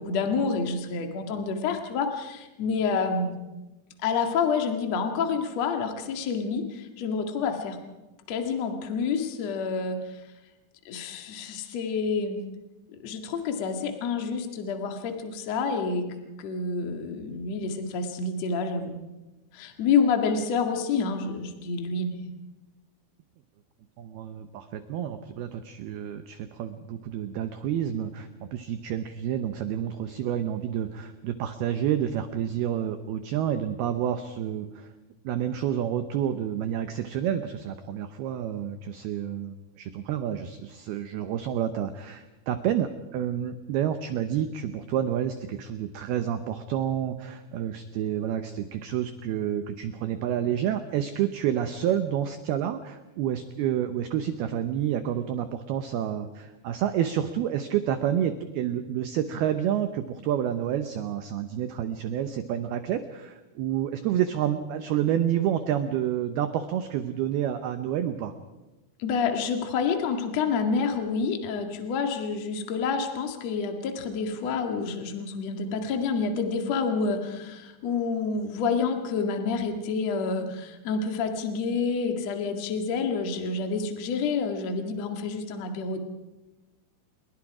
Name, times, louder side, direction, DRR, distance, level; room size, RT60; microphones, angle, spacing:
voice 1, 0.0-3.3 4.0-7.8 8.3-10.2 10.9-12.4 12.9-19.0 19.5-22.3 69.0-86.0, left 5 dB, 50° left, 5 dB, 2.2 m, -28 dB
voice 2, 24.0-34.9 35.2-68.3, right 10 dB, 85° right, 9 dB, 2.2 m, -29 dB
28.0 x 22.0 x 4.9 m, 1.1 s
omnidirectional pair, 5.8 m